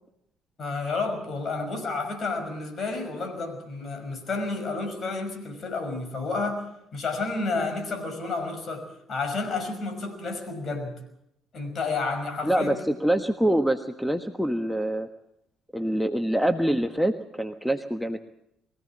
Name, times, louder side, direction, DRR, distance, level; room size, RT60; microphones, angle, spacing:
voice 1, 0.6-6.6 6.9-10.9 11.5-12.8, left 3 dB, 45° left, 7 dB, 5.9 m, -30 dB
voice 2, 12.4-15.1 15.7-18.2, right 1 dB, ahead, 8 dB, 1.4 m, -25 dB
23.0 x 16.5 x 7.5 m, 0.78 s
hypercardioid pair, 55°, 0 cm